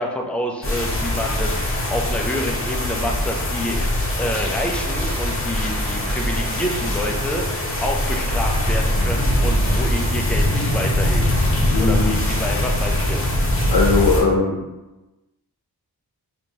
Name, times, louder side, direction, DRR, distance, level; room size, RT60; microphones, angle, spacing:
voice 1, 0.0-11.3 11.8-13.2, equal, 5° left, 1 dB, 0.4 m, -28 dB
sound 1, 0.6-14.2, left 1 dB, 35° left, 0.8 m, -22 dB
voice 2, 11.7-12.1 13.7-14.6, left 4 dB, 65° left, -4 dB, 0.7 m, -19 dB
4.5 x 2.6 x 2.8 m, 1.1 s
wide cardioid pair, 95°, 40 cm